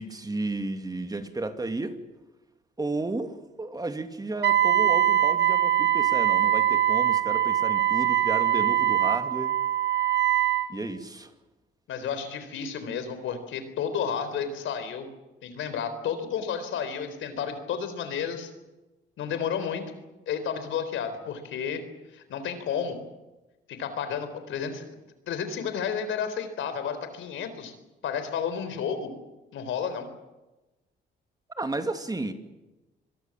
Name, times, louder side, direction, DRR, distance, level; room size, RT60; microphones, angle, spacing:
voice 1, 0.0-2.0 2.8-9.5 10.7-11.3 31.6-32.3, right 2 dB, 20° right, 8 dB, 2.4 m, -33 dB
Wind instrument woodwind instrument, 4.4-10.7, right 12 dB, 60° right, 1.6 m, -23 dB
voice 2, 11.9-15.1 15.4-18.5 19.2-19.8 20.3-21.8 22.1-23.0 23.7-24.8 25.3-27.7 28.0-29.1 29.5-30.1, left 7 dB, 80° left, 10 dB, 4.0 m, -31 dB
25.5 x 21.0 x 7.4 m, 1.1 s
cardioid pair, 90°, 20 cm